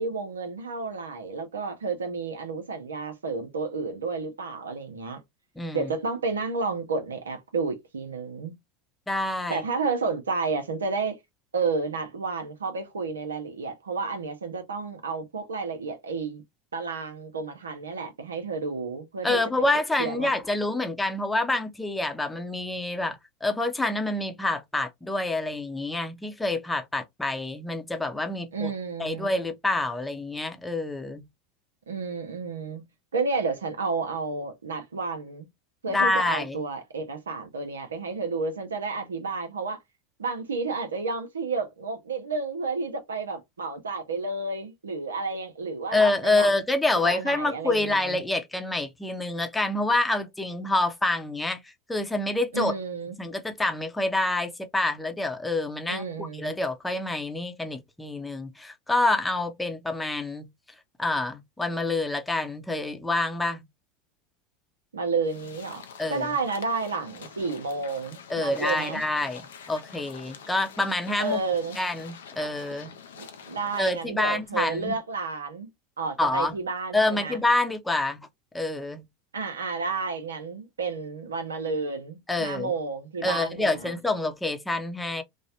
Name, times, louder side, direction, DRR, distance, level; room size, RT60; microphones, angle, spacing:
voice 1, 0.0-5.2 5.7-8.6 9.5-11.2 11.5-16.4 16.7-20.3 28.5-29.4 31.9-32.8 33.1-35.5 35.8-39.8 40.2-46.5 47.0-48.2 52.5-53.1 55.9-56.6 64.9-65.8 66.1-69.0 71.2-71.8 73.2-75.7 76.0-77.4 79.3-83.9, right 4 dB, 90° right, 0.7 m, -31 dB
voice 2, 5.6-5.9 9.1-9.6 19.2-28.7 29.0-31.2 35.9-36.6 45.9-52.7 53.2-60.5 61.0-63.6 66.0-66.3 68.3-71.4 71.8-72.9 73.8-74.9 76.2-76.6 76.9-78.3 78.5-79.0 82.3-82.7 83.2-85.2, left 2 dB, 10° left, 0.7 m, -27 dB
sound 1, 65.2-74.0, left 6 dB, 80° left, 0.5 m, -46 dB
3.1 x 2.2 x 2.8 m
hypercardioid pair, 85°, 0 cm